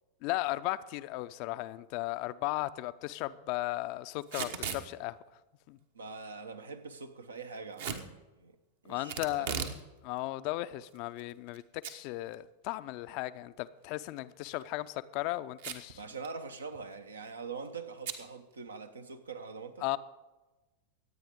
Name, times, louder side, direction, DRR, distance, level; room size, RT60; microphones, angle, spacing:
voice 1, 0.2-5.2 5.7-5.8 8.9-9.6 10.0-16.0 19.8-20.0, left 17 dB, 45° left, 0.5 m, -36 dB
Packing tape duct tape / Tearing, 4.2-4.8 7.8-8.0 9.1-9.8 10.2-10.3 10.9-11.6 11.8-11.9 12.3-12.4 14.4-14.7 15.6-15.9 16.2-16.3 16.6-16.9 18.0-18.2, right 7 dB, 60° right, 1.2 m, -37 dB
voice 2, 5.9-8.6 8.8-9.7 16.0-19.9, right 4 dB, 75° right, 1.0 m, -43 dB
25.0 x 9.1 x 3.7 m
figure-of-eight pair, 90°, 0 cm